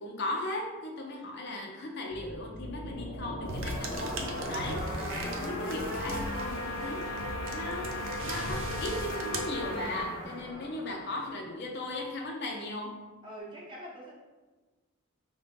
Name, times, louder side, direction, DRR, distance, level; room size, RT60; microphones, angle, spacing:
voice 1, 0.0-7.1 7.5-8.0 8.2-13.0, left 2 dB, 55° left, 1 dB, 0.6 m, -37 dB
sound 1, 2.1-11.6, left 1 dB, 70° left, 1.0 m, -37 dB
sound 2, 3.5-10.1, right 2 dB, 70° right, 0.6 m, -39 dB
voice 2, 13.2-14.1, right 1 dB, 25° right, -4 dB, 0.9 m, -44 dB
4.8 x 2.7 x 3.5 m, 1.2 s
head